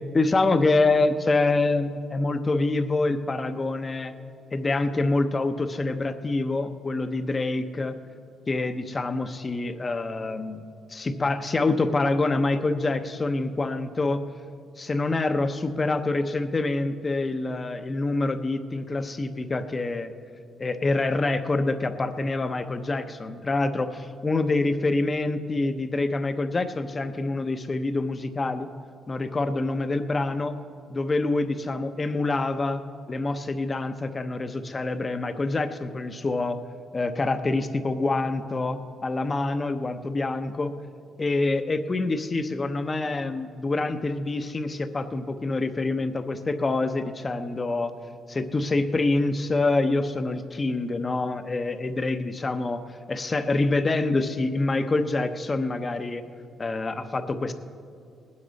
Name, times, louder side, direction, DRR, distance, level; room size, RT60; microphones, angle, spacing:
voice 1, 0.1-4.1 4.5-8.0 8.5-10.6 10.9-14.2 14.8-20.1 20.6-28.7 29.1-30.5 30.9-32.8 33.1-36.6 36.9-40.7 41.2-47.9 48.3-52.8 53.1-56.2 56.6-57.5, left 2 dB, 30° left, 9 dB, 0.8 m, -26 dB
19.5 x 9.8 x 4.1 m, 2.4 s
cardioid pair, 90°, 0 cm